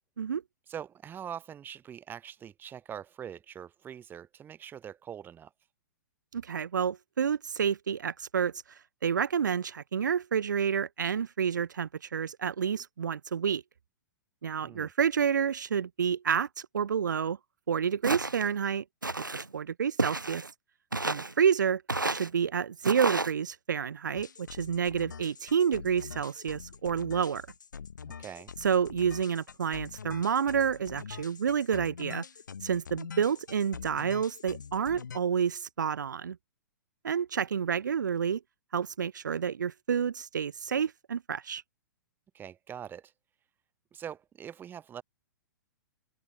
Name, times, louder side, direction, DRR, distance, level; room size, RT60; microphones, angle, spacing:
voice 1, 0.7-5.5 14.6-14.9 28.0-28.5 42.3-43.1 43.9-45.0, right 9 dB, 20° right, 3.5 m, -43 dB
voice 2, 6.3-8.5 9.0-13.6 14.4-17.4 17.7-18.8 19.3-20.4 21.0-21.8 22.1-27.4 28.6-32.2 32.6-36.4 37.0-38.4 38.7-41.6, right 7 dB, 75° right, 0.6 m, -29 dB
Walk footsteps, 18.0-18.5 19.0-19.5 20.0-20.5 20.9-21.3 21.9-22.3 22.8-23.3, right 2 dB, 90° right, 4.3 m, -31 dB
sound 1, 24.1-35.2, left 6 dB, 75° left, 3.6 m, -44 dB
open air
figure-of-eight pair, 110°, 10 cm